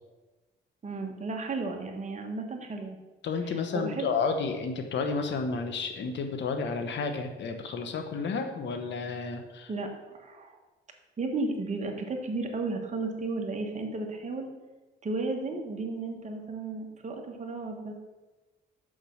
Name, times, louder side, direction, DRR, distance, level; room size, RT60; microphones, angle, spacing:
voice 1, 0.8-3.0 3.5-4.1 9.7-10.5 11.2-14.5 15.0-17.9, right 3 dB, 35° right, 3 dB, 1.5 m, -34 dB
voice 2, 3.2-9.7, left 4 dB, 65° left, 6 dB, 1.2 m, -31 dB
6.2 x 5.8 x 6.4 m, 1.2 s
cardioid pair, 90°, 20 cm